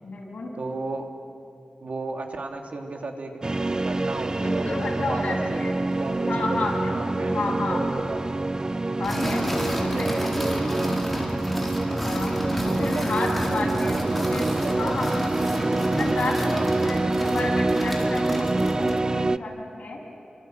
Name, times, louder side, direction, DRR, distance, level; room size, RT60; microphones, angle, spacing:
voice 1, 0.0-0.5 4.3-5.7 6.3-7.8 9.0-10.4 12.0-12.4 12.6-14.0 14.3-20.0, left 2 dB, 70° left, -1 dB, 8.0 m, -31 dB
voice 2, 0.6-1.1 1.8-3.4 3.8-4.8 5.1-5.6 6.0-8.5 9.9-11.0 12.7-13.1 13.5-15.0 16.3-16.7, right 3 dB, 65° right, 2 dB, 3.0 m, -34 dB
sound 1, 3.4-19.4, right 2 dB, 30° right, 0.5 m, -26 dB
sound 2, 9.0-19.1, equal, 5° left, 4.5 m, -31 dB
30.0 x 24.5 x 8.1 m, 2.7 s
wide cardioid pair, 110°, 2 cm